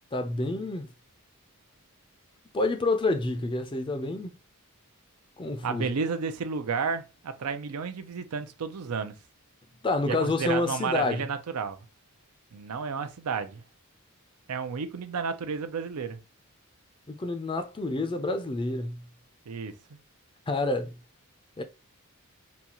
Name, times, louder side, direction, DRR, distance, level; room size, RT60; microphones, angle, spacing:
voice 1, 0.1-0.9 2.5-4.3 5.4-5.9 9.8-11.2 17.1-19.0 20.5-20.9 21.6-21.7, left 2 dB, 25° left, 0.4 m, -28 dB
voice 2, 5.6-9.2 10.1-11.8 12.5-13.6 14.5-16.2 19.5-20.0, right 5 dB, 85° right, 0.5 m, -32 dB
4.0 x 2.3 x 2.9 m
head